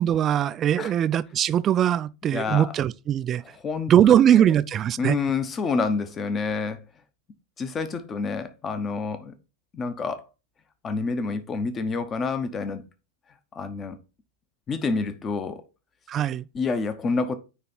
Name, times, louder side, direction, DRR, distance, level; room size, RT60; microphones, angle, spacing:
voice 1, 0.0-3.4 3.9-5.2 16.1-16.5, right 10 dB, 30° right, 0.3 m, -21 dB
voice 2, 2.3-2.7 3.6-3.9 4.3-4.4 5.0-6.8 7.6-9.3 9.7-10.3 10.8-12.8 13.5-14.0 14.7-15.6 16.5-17.4, left 4 dB, 25° left, 0.9 m, -28 dB
9.3 x 3.3 x 4.3 m
figure-of-eight pair, 90°, 0 cm